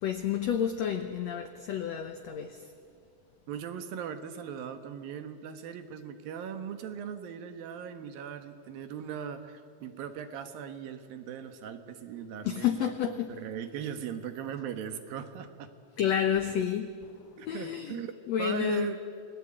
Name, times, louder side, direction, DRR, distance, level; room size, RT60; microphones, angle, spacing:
voice 1, 0.0-2.7 12.4-13.3 16.0-18.9, left 9 dB, 75° left, 7 dB, 1.6 m, -30 dB
voice 2, 3.5-12.9 13.3-15.7 17.4-18.1 18.4-19.0, right 8 dB, 70° right, 9 dB, 3.1 m, -39 dB
29.0 x 21.5 x 8.8 m, 2.3 s
omnidirectional pair, 4.4 m